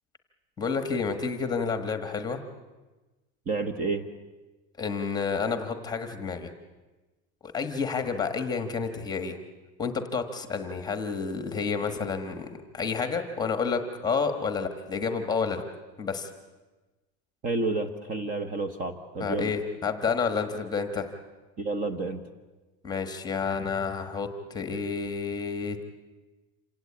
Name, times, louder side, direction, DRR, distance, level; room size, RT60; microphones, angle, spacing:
voice 1, 0.6-2.4 4.8-6.5 7.4-9.4 9.8-15.6 16.0-16.3 19.2-21.1 22.8-25.8, left 5 dB, 10° left, 8 dB, 1.3 m, -30 dB
voice 2, 3.5-4.1 17.4-19.5 21.6-22.2, right 3 dB, 25° right, 9 dB, 1.1 m, -30 dB
27.5 x 17.5 x 8.5 m, 1.2 s
cardioid pair, 180°, 33 cm